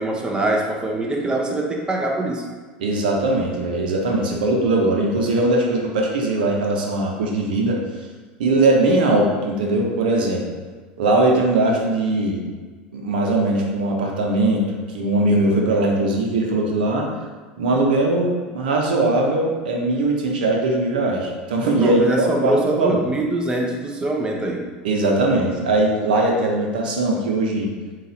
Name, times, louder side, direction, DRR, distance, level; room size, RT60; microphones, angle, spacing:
voice 1, 0.0-2.4 21.8-24.6, right 2 dB, 15° right, 0 dB, 0.7 m, -23 dB
voice 2, 2.8-7.8 8.4-10.4 11.0-12.4 12.9-17.1 17.6-23.0 24.8-27.7, right 2 dB, 80° right, 0 dB, 0.8 m, -20 dB
3.9 x 2.5 x 4.1 m, 1.4 s
hypercardioid pair, 95°, 5 cm